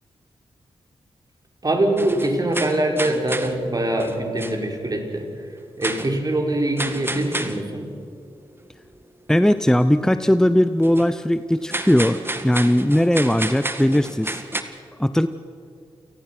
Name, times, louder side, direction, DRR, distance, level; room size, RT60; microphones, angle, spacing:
voice 1, 1.6-5.3 5.8-7.9, right 1 dB, 35° right, 2 dB, 5.2 m, -23 dB
sound 1, 2.0-3.6 4.0-4.6 5.8-6.1 6.8-7.6 10.8-11.1 11.7-14.6, right 1 dB, 20° right, 2.0 m, -30 dB
voice 2, 9.3-14.4 15.0-15.3, equal, 5° left, 12 dB, 0.8 m, -19 dB
28.5 x 18.5 x 6.1 m, 2.4 s
supercardioid pair, 45°, 11 cm